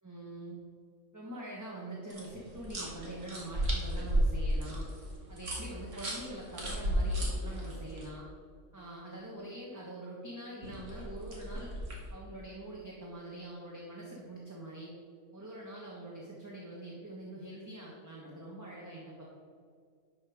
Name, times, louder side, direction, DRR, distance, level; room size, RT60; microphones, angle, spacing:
voice 1, 0.0-0.5 1.1-4.8 5.3-8.3 8.7-11.7 12.1-14.9 15.3-19.2, right 1 dB, 15° right, -4 dB, 1.3 m, -44 dB
sound 1, 2.1-8.0 10.6-12.1, right 1 dB, 65° right, 2.3 m, -34 dB
11.5 x 5.3 x 5.0 m, 2.2 s
omnidirectional pair, 1.4 m